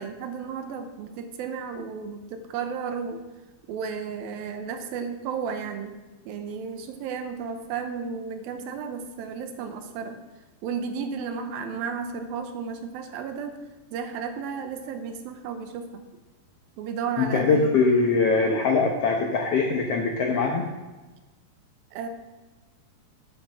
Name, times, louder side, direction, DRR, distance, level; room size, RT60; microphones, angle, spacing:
voice 1, 0.0-3.2 3.7-5.9 6.3-10.2 10.6-13.6 13.9-16.0 16.8-17.7 21.9-22.1, right 6 dB, 80° right, 7 dB, 2.7 m, -33 dB
voice 2, 17.2-20.7, left 4 dB, 80° left, 1 dB, 1.4 m, -22 dB
9.3 x 8.0 x 6.2 m, 1.2 s
omnidirectional pair, 4.2 m